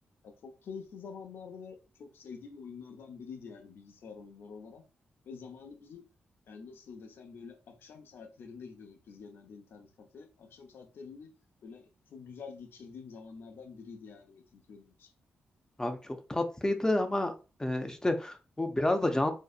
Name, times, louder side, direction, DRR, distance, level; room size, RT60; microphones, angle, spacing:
voice 1, 0.2-4.8 5.3-6.0 6.5-11.3 11.6-11.8 12.1-15.1, left 5 dB, 75° left, 0.5 m, -47 dB
voice 2, 15.8-17.3 17.6-19.3, left 1 dB, 15° left, 0.4 m, -29 dB
2.6 x 2.1 x 2.3 m
cardioid pair, 55°, 4 cm